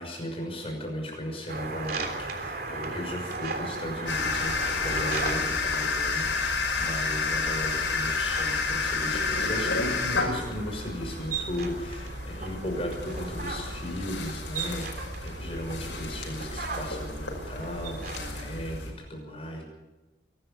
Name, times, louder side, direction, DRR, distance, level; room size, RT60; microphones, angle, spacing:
voice 1, 0.0-19.6, equal, 30° left, 2 dB, 6.1 m, -36 dB
sound 1, 1.5-18.5, right 3 dB, 50° right, 3.4 m, -38 dB
sound 2, 4.1-18.9, left 4 dB, 85° left, 5.5 m, -31 dB
23.5 x 13.0 x 8.5 m, 1.1 s
head